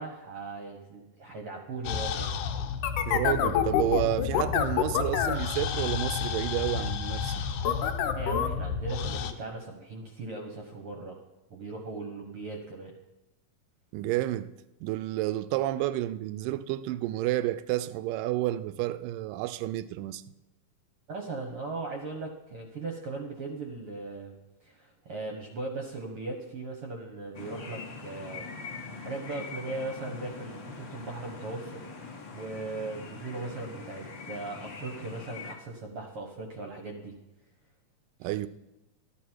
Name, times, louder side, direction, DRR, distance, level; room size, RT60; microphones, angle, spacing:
voice 1, 0.0-2.3 8.1-11.2 11.5-13.0 21.1-24.3 24.6-28.5 29.0-31.8 32.3-37.1 38.2-38.3, right 3 dB, 55° right, 1.6 m, -38 dB
sound 1, 1.8-9.3, left 7 dB, 70° left, 2.2 m, -29 dB
voice 2, 3.1-7.4 13.9-14.5 14.8-20.2 38.2-38.5, right 15 dB, 80° right, 2.0 m, -30 dB
sound 2, 27.3-35.5, left 4 dB, 55° left, 1.3 m, -43 dB
13.0 x 12.5 x 4.6 m
omnidirectional pair, 4.3 m